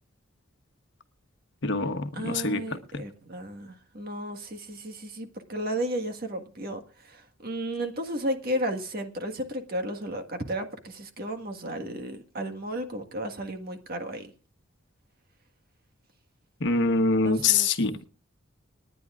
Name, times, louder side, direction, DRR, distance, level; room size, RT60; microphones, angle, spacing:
voice 1, 1.6-2.6 2.9-3.0 16.6-17.9, left 3 dB, 60° left, 1.1 m, -24 dB
voice 2, 2.1-14.3 17.2-17.7, right 1 dB, 50° right, 1.6 m, -33 dB
29.0 x 9.8 x 2.4 m
head